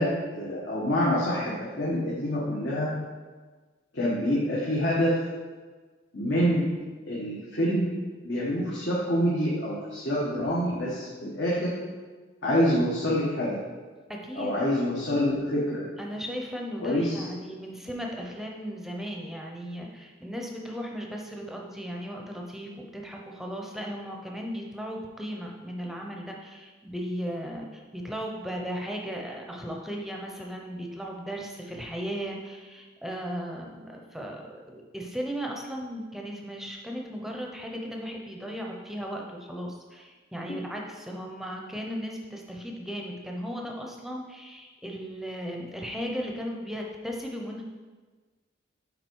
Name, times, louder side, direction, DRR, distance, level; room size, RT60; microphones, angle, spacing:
voice 1, 0.0-2.9 3.9-5.2 6.1-6.6 7.0-7.9 8.2-11.7 12.4-13.6 14.3-15.8 16.8-17.2, equal, 60° left, -7 dB, 1.5 m, -26 dB
voice 2, 14.1-14.6 16.0-47.6, equal, ahead, 0 dB, 0.8 m, -36 dB
7.8 x 4.8 x 4.7 m, 1.4 s
head